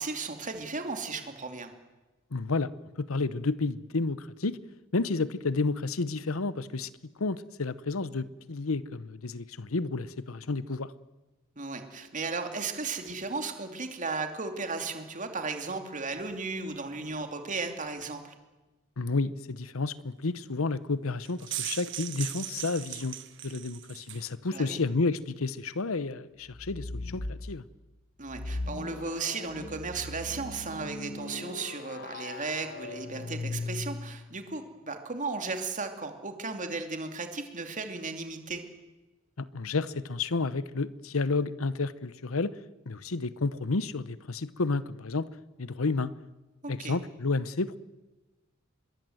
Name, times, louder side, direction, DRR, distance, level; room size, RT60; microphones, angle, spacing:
voice 1, 0.0-1.7 11.6-18.3 24.5-24.8 28.2-38.6 46.8-47.0, right 4 dB, 40° right, 6 dB, 2.6 m, -35 dB
voice 2, 2.3-2.7 3.0-4.6 4.9-6.9 7.2-10.9 19.0-23.2 23.4-27.6 39.4-42.5 42.9-45.3 45.6-46.1 46.7-47.8, left 3 dB, 90° left, 17 dB, 0.9 m, -31 dB
sound 1, 21.2-24.3, right 13 dB, 60° right, 1.4 m, -38 dB
sound 2, 26.5-27.4 28.3-34.3, left 2 dB, 50° left, 1.2 m, -39 dB
25.5 x 22.0 x 7.9 m, 1.1 s
head